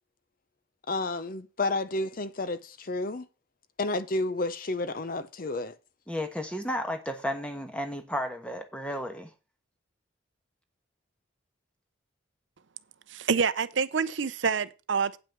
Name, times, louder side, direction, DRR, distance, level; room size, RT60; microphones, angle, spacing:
voice 1, 0.9-3.3 3.8-5.8, left 2 dB, 45° left, 0.6 m, -31 dB
voice 2, 6.1-9.3, equal, 5° left, 1.3 m, -33 dB
voice 3, 13.1-15.2, right 5 dB, 65° right, 0.6 m, -27 dB
9.0 x 6.1 x 5.9 m
head